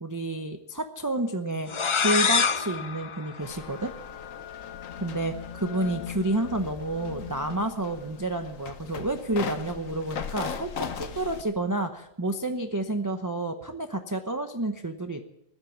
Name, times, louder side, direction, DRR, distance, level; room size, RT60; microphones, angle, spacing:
voice 1, 0.0-3.9 5.0-15.2, right 2 dB, 15° right, 5 dB, 0.8 m, -30 dB
sound 1, 1.7-4.3, left 5 dB, 45° left, 0.4 m, -27 dB
sound 2, 3.4-11.4, left 7 dB, 85° left, 1.5 m, -38 dB
15.5 x 11.0 x 7.3 m, 0.86 s
omnidirectional pair, 1.3 m